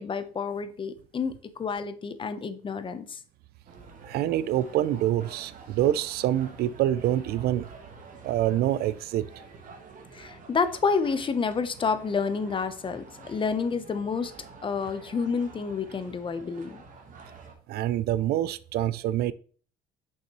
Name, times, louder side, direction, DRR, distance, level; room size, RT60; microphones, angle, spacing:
voice 1, 0.0-3.2 10.1-14.3 14.6-16.8, left 5 dB, 30° left, 0.7 m, -29 dB
sound 1, 3.7-17.5, right 4 dB, 50° right, 1.4 m, -49 dB
voice 2, 4.0-7.7 8.2-9.3 17.7-19.3, right 12 dB, 70° right, 0.4 m, -26 dB
6.6 x 5.5 x 3.0 m
cardioid pair, 110°, 17 cm